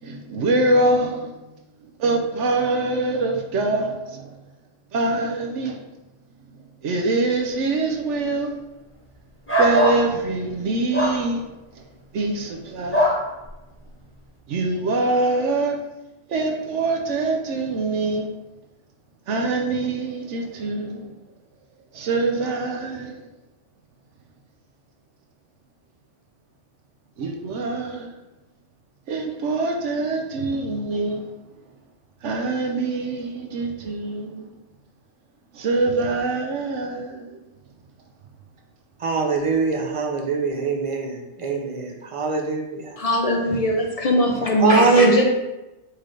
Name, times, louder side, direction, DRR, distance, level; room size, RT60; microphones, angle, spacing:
voice 1, 0.0-1.3 2.0-4.3 4.9-5.9 6.8-8.5 9.6-11.5 12.1-13.1 14.5-15.8 16.3-18.3 19.3-21.1 21.9-23.2 27.2-28.1 29.1-31.3 32.2-34.5 35.5-37.4, right 2 dB, 75° right, 1.0 m, -24 dB
sound 1, 9.5-10.0 10.9-11.2 12.9-13.2, equal, 10° left, 1.1 m, -20 dB
voice 2, 39.0-43.0 44.6-45.2, right 4 dB, 45° right, 0.4 m, -22 dB
voice 3, 43.0-45.2, left 1 dB, 50° left, 0.4 m, -20 dB
4.3 x 3.2 x 3.7 m
omnidirectional pair, 1.3 m